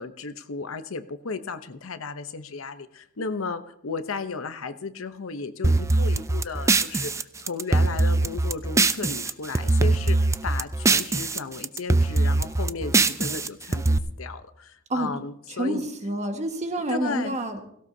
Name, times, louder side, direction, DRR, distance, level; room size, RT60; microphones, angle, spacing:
voice 1, 0.0-15.9 16.9-17.3, left 4 dB, 85° left, 10 dB, 0.8 m, -34 dB
sound 1, 5.6-9.3 9.5-11.4 11.6-14.0, right 3 dB, 15° right, 0.4 m, -22 dB
voice 2, 15.5-17.6, right 1 dB, 35° right, 5 dB, 1.5 m, -28 dB
17.5 x 16.5 x 2.8 m, 0.71 s
head